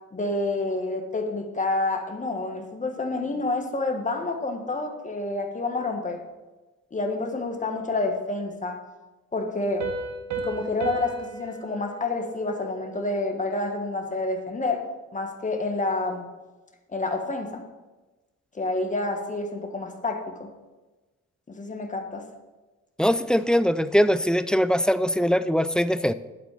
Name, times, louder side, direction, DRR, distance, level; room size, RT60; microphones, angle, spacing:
voice 1, 0.1-6.2 6.9-8.8 9.3-9.9 10.4-14.8 15.1-16.3 16.9-17.6 18.5-20.5 21.5-22.3, left 2 dB, 25° left, 3 dB, 1.5 m, -28 dB
Piano, 9.8-13.2, right 4 dB, 65° right, 1.3 m, -35 dB
voice 2, 23.0-26.1, equal, 5° left, 13 dB, 0.3 m, -22 dB
12.0 x 4.1 x 6.6 m, 1.2 s
cardioid pair, 90°, 30 cm